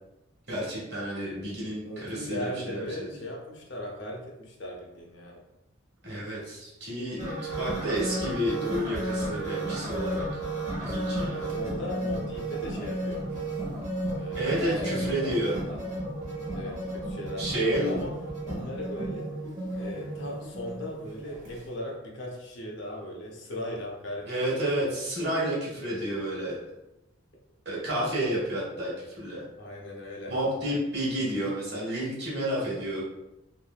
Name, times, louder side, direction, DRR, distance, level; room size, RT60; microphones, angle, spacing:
voice 1, 0.5-3.1 6.0-10.2 10.8-11.5 14.3-15.5 17.4-18.0 24.3-26.6 27.6-29.4 30.3-33.1, right 1 dB, 55° right, -6 dB, 1.1 m, -30 dB
voice 2, 1.8-5.4 7.5-8.0 11.3-13.3 14.2-15.8 16.5-18.2 18.4-19.3 19.8-25.0 29.5-30.4 30.7-30.8, left 1 dB, 60° left, -1 dB, 0.6 m, -38 dB
sound 1, 7.2-21.6, right 1 dB, 35° right, 0.8 m, -33 dB
3.1 x 2.0 x 2.3 m, 0.92 s
head